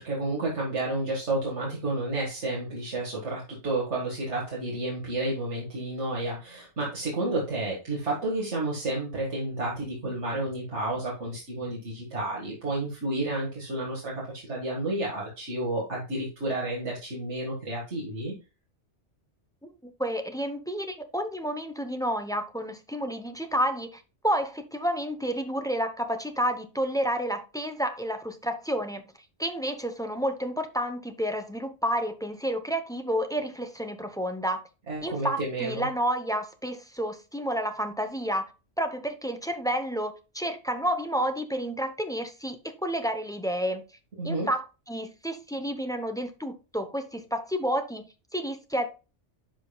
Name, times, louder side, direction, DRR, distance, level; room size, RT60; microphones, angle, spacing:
voice 1, 0.0-18.3 34.9-35.9 44.2-44.5, right 2 dB, 70° right, 2.1 m, -31 dB
voice 2, 19.8-29.1 29.4-34.6 35.0-38.5 38.8-43.8 44.2-48.9, equal, 5° left, 0.5 m, -30 dB
10.5 x 5.1 x 2.3 m
omnidirectional pair, 1.2 m